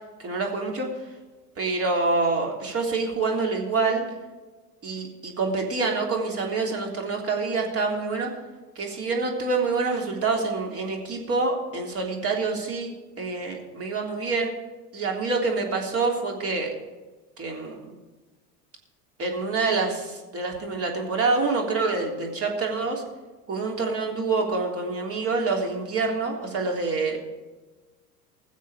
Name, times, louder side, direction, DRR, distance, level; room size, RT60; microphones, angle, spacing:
voice 1, 0.2-0.9 1.6-4.0 4.8-8.3 8.7-14.5 14.9-16.7 17.4-17.9 19.2-23.0 23.5-27.2, right 3 dB, 30° right, 1 dB, 3.4 m, -26 dB
20.0 x 7.5 x 5.0 m, 1.3 s
figure-of-eight pair, 80°, 47 cm